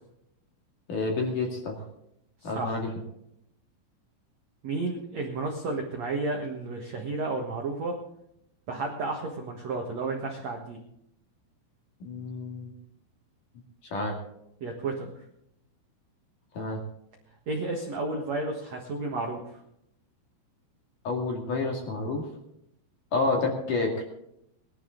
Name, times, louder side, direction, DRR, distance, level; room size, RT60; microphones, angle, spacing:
voice 1, 0.9-1.8 2.4-2.9 12.0-12.7 13.9-14.2 16.5-16.8 21.0-22.2 23.1-24.0, left 3 dB, 50° left, 1 dB, 3.1 m, -29 dB
voice 2, 2.4-2.8 4.6-7.9 8.7-10.8 14.6-15.1 17.5-19.6, right 3 dB, 80° right, 1 dB, 1.5 m, -32 dB
20.5 x 12.0 x 3.9 m, 0.77 s
omnidirectional pair, 5.8 m